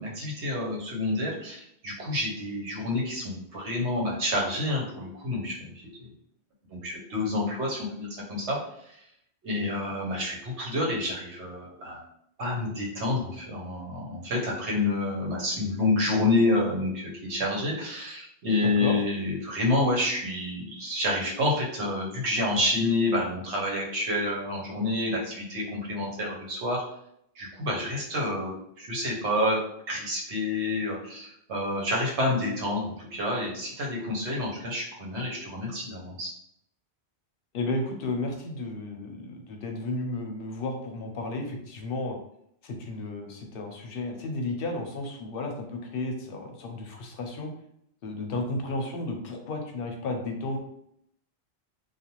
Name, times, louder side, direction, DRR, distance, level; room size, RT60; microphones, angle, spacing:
voice 1, 0.0-5.7 6.7-8.6 8.9-9.0 9.4-12.0 12.4-26.8 27.4-29.6 29.9-36.3, left 2 dB, 90° right, -3 dB, 1.1 m, -28 dB
voice 2, 18.6-18.9 37.5-42.2 42.6-47.5 48.0-50.6, left 2 dB, 65° left, 3 dB, 0.7 m, -33 dB
2.5 x 2.2 x 2.9 m, 0.73 s
omnidirectional pair, 1.1 m